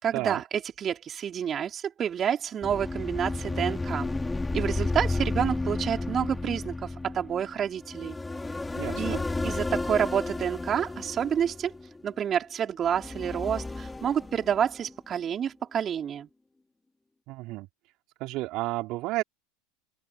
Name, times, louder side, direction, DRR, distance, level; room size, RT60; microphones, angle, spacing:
voice 1, 0.0-0.4 0.8-4.1 4.5-8.2 9.0-9.2 9.4-11.7 12.0-16.3, right 8 dB, 35° right, 5.3 m, -29 dB
sound 1, 2.6-12.2 12.9-14.9, left 2 dB, 10° left, 4.8 m, -32 dB
voice 2, 8.8-9.3 17.3-17.7 18.2-19.2, right 19 dB, 55° right, 3.7 m, -32 dB
open air
hypercardioid pair, 90°, 0 cm